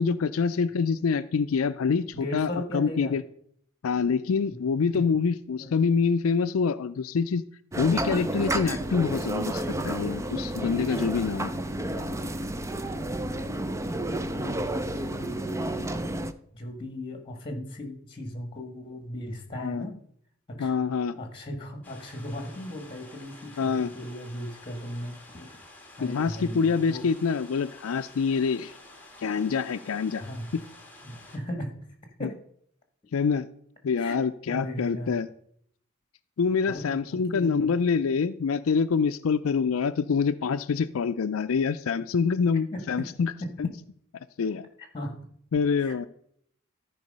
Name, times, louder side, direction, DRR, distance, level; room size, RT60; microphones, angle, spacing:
voice 1, 0.0-3.2 3.8-7.4 7.8-11.5 19.6-19.9 20.6-21.2 23.6-23.9 26.0-28.7 29.2-30.2 30.5-30.6 32.2-32.3 33.1-33.5 33.8-35.3 36.4-43.3 43.6-43.7 44.4-44.7 45.5-46.1, left 5 dB, 80° left, 10 dB, 0.4 m, -26 dB
voice 2, 2.1-3.1 4.5-4.6 4.9-5.0 5.6-5.8 11.9-12.2 12.9-13.5 14.3-16.1 16.5-20.0 20.5-20.7 21.2-25.5 26.0-27.1 30.2-30.5 31.0-31.7 32.2-32.3 34.0-34.2 34.5-35.2 36.7-37.7 42.7-43.1 43.4-43.5 44.8-45.2 45.8-46.1, left 1 dB, 25° left, 5 dB, 1.7 m, -37 dB
sound 1, 7.7-16.3, right 1 dB, 15° right, 0.4 m, -31 dB
sound 2, 21.8-31.4, left 2 dB, 10° left, 1.7 m, -50 dB
13.5 x 4.7 x 5.4 m, 0.66 s
head